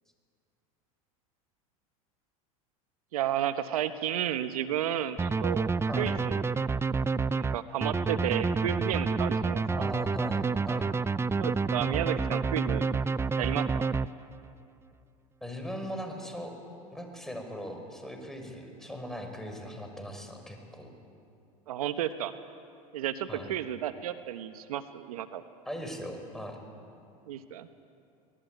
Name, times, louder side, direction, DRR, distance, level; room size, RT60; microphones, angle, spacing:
voice 1, 3.1-6.4 7.4-9.9 11.3-12.9 13.4-13.9 21.7-22.3 22.9-25.4 27.3-27.7, right 11 dB, 80° right, 11 dB, 1.0 m, -32 dB
sound 1, 5.2-14.5, right 4 dB, 15° right, 0.5 m, -29 dB
voice 2, 9.7-10.9 15.4-16.5 16.9-20.9 23.3-23.5 25.7-26.6, equal, ahead, 4 dB, 5.4 m, -39 dB
24.0 x 19.0 x 9.2 m, 2.5 s
hypercardioid pair, 90°, 19 cm